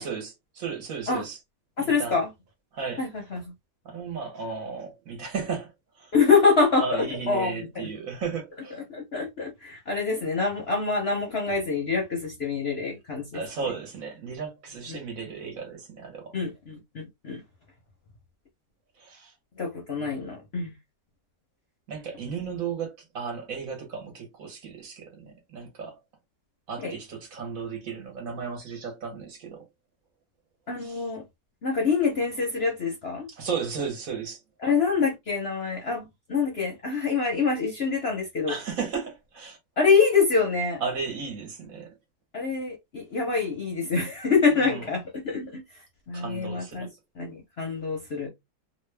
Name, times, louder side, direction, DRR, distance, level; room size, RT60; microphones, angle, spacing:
voice 1, 0.0-1.4 1.8-2.2 2.7-3.1 3.8-6.1 6.8-8.8 13.3-16.4 19.0-19.3 20.0-20.2 21.9-26.0 26.7-29.6 30.8-31.2 33.3-34.4 38.5-39.6 40.8-42.0 44.5-44.8 46.1-46.9, right 5 dB, 60° right, 1.2 m, -35 dB
voice 2, 1.8-2.3 3.0-3.4 6.1-7.9 8.9-13.4 14.9-15.0 16.3-17.4 19.6-20.7 26.8-26.9 30.7-31.2 31.6-33.3 34.6-38.5 39.8-40.8 42.3-45.8 46.1-46.9 47.2-48.3, left 4 dB, 50° left, 0.8 m, -25 dB
3.0 x 2.2 x 3.3 m
omnidirectional pair, 1.8 m